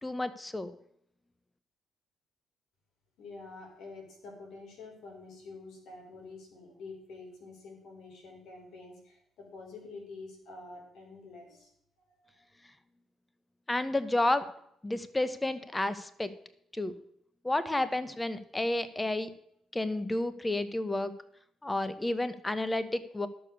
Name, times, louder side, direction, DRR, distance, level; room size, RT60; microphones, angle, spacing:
voice 1, 0.0-0.7 13.7-14.5 14.8-16.3 16.7-17.0 17.4-19.3 19.7-21.1 21.6-23.3, left 2 dB, 15° left, 13 dB, 1.0 m, -31 dB
voice 2, 3.2-11.7 12.1-12.4, left 3 dB, 75° left, 1 dB, 4.3 m, -48 dB
11.5 x 6.9 x 6.5 m, 0.71 s
cardioid pair, 90°, 0 cm